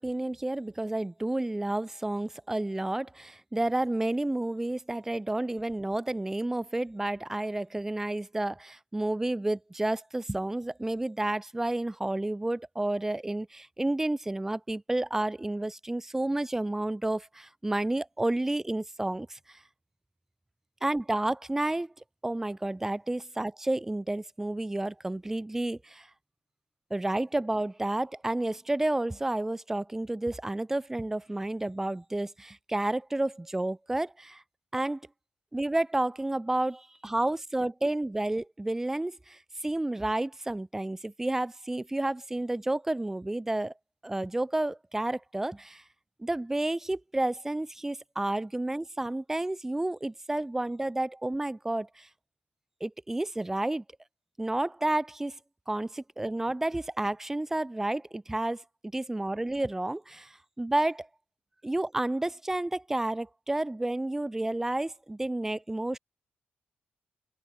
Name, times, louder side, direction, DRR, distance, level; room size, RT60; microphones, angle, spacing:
voice 1, 0.0-19.6 20.8-21.9 22.2-26.1 26.9-34.4 34.7-35.0 35.5-43.7 44.0-45.8 46.2-52.1 52.8-53.8 54.4-55.4 55.7-58.6 58.9-61.1 61.6-66.0, right 1 dB, 10° right, 0.5 m, -31 dB
cardioid pair, 115°, 4 cm